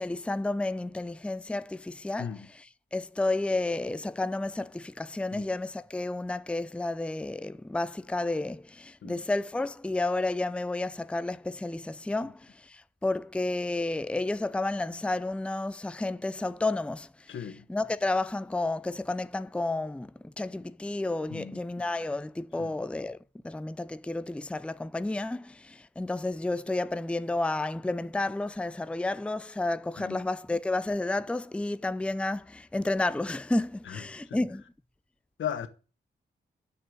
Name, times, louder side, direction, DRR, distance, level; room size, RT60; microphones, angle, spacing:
voice 1, 0.0-2.7 2.9-17.1 17.7-23.2 23.4-34.6, left 2 dB, 5° left, 0.5 m, -31 dB
voice 2, 17.3-17.6 21.3-21.6 22.6-22.7 30.0-30.2 33.9-34.0 34.3-34.4 35.4-35.7, left 8 dB, 80° left, 1.1 m, -36 dB
7.6 x 6.8 x 7.8 m
cardioid pair, 55°, 20 cm